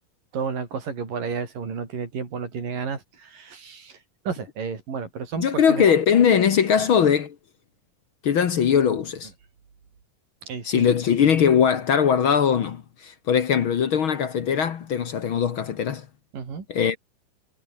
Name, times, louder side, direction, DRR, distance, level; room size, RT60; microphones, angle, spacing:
voice 1, 0.3-4.0 4.3-5.8 6.8-6.9 10.4-10.9 16.3-16.6, right 5 dB, 75° right, 6.2 m, -32 dB
voice 2, 5.4-7.3 8.2-9.3 10.6-16.0 16.7-17.0, left 7 dB, 55° left, 1.5 m, -20 dB
omnidirectional pair, 3.9 m